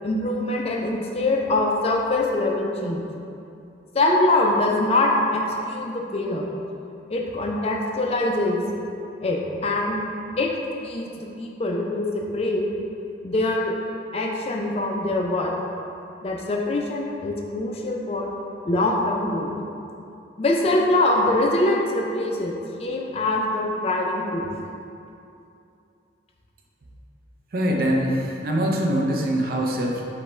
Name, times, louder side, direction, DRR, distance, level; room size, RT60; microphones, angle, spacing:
voice 1, 0.0-3.0 3.9-6.5 7.1-8.6 9.2-10.0 10.4-10.5 10.8-12.7 13.2-13.7 14.1-15.6 16.2-18.3 18.7-19.5 20.4-22.5 22.8-24.5, left 2 dB, 35° left, 0 dB, 0.4 m, -23 dB
voice 2, 27.5-30.0, right 1 dB, 50° right, 0 dB, 0.5 m, -23 dB
5.1 x 2.1 x 4.3 m, 2.7 s
head